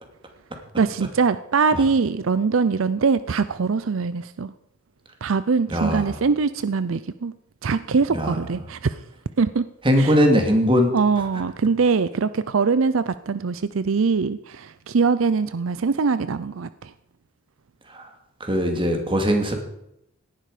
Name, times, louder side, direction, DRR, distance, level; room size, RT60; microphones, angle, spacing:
voice 1, 0.8-4.5 5.2-7.3 7.6-9.0 9.4-9.7 10.0-10.2 10.9-16.9, right 5 dB, 80° right, 14 dB, 0.5 m, -22 dB
voice 2, 5.7-6.1 8.1-8.4 9.8-10.9 17.9-18.0 18.4-19.5, equal, 25° right, 4 dB, 2.5 m, -20 dB
17.5 x 11.5 x 5.0 m, 0.80 s
head